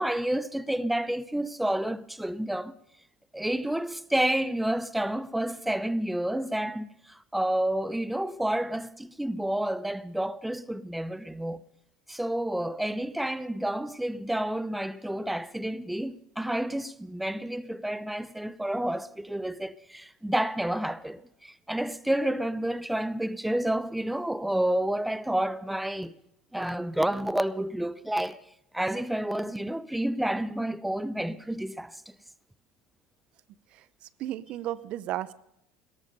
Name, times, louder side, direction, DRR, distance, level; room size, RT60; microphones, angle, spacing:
voice 1, 0.0-2.7 3.3-11.6 12.1-26.1 26.5-28.4 28.7-32.1, right 1 dB, 5° right, 0.6 m, -30 dB
voice 2, 34.2-35.3, right 13 dB, 60° right, 0.6 m, -33 dB
17.0 x 13.5 x 5.4 m
supercardioid pair, 100°, 2 cm